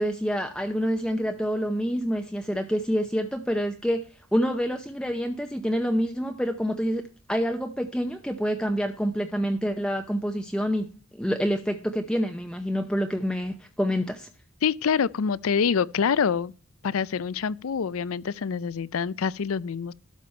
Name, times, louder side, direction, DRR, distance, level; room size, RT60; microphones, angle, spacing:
voice 1, 0.0-4.0 4.3-10.9 11.1-14.3, equal, 5° left, 0.7 m, -27 dB
voice 2, 14.6-16.5 16.8-19.9, left 6 dB, 90° left, 0.5 m, -26 dB
12.5 x 7.0 x 4.4 m
head